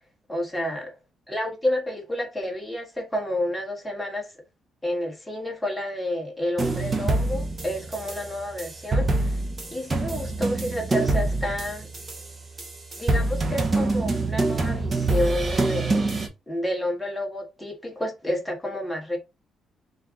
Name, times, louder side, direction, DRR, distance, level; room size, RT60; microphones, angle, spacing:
voice 1, 0.3-0.9 1.3-4.3 4.8-9.3 9.7-11.9 13.0-16.1 16.5-19.2, left 1 dB, 5° left, 1.2 m, -30 dB
sound 1, 6.6-16.3, right 2 dB, 25° right, 0.8 m, -26 dB
4.3 x 2.5 x 3.7 m
cardioid pair, 160°, 0 cm